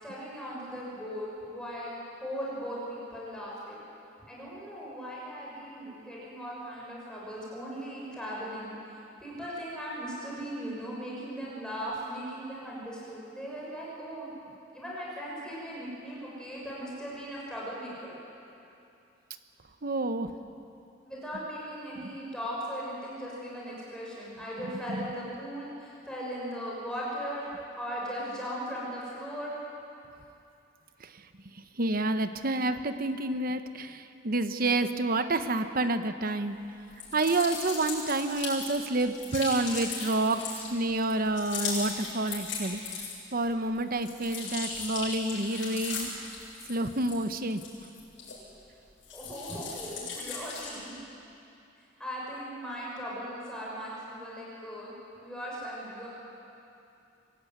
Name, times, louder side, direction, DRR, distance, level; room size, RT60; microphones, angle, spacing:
voice 1, 0.0-3.8 4.3-8.7 9.2-14.3 14.7-18.2 21.0-29.6 49.1-50.9 51.8-56.1, equal, 5° left, -6 dB, 6.6 m, -38 dB
voice 2, 19.8-20.4 22.0-22.1 24.6-25.1 31.0-31.3 31.5-36.7 37.1-43.0 43.3-46.1 46.7-47.6, right 2 dB, 50° right, 9 dB, 1.0 m, -29 dB
sound 1, 36.9-43.4 43.7-48.6 49.0-50.9, left 4 dB, 75° left, 8.0 m, -38 dB
24.5 x 16.0 x 9.4 m, 2.7 s
head